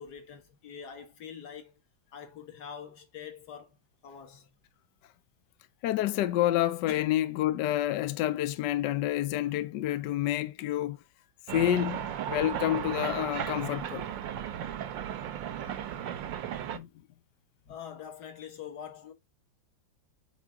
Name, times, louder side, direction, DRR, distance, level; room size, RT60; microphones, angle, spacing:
voice 1, 0.0-1.8 2.1-3.8 4.0-4.5 6.9-7.1 17.7-19.1, left 7 dB, 55° left, 1.8 m, -44 dB
voice 2, 5.8-11.0 11.5-14.1 16.7-16.9, left 13 dB, 75° left, 1.1 m, -28 dB
sound 1, 11.5-16.8, right 9 dB, 70° right, 1.5 m, -35 dB
5.9 x 4.7 x 3.4 m
omnidirectional pair, 2.1 m